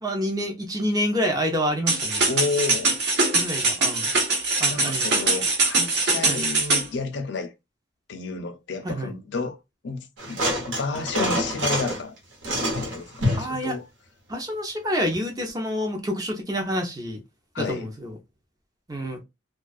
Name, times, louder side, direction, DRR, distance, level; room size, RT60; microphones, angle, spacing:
voice 1, 0.0-2.2 3.2-4.1 4.6-5.1 6.3-6.4 8.8-9.1 13.3-13.8 14.3-17.2 17.6-18.2 18.9-19.2, equal, 20° right, 0.5 m, -28 dB
sound 1, 1.9-6.9, right 3 dB, 55° right, 1.0 m, -22 dB
voice 2, 2.3-3.0 4.7-7.5 8.1-9.6 9.8-12.2 12.8-13.8 17.5-17.9, left 4 dB, 55° left, 0.5 m, -31 dB
sound 2, 10.2-12.0 12.4-13.6 15.1-15.2, equal, 75° right, 1.2 m, -26 dB
2.3 x 2.3 x 2.3 m
head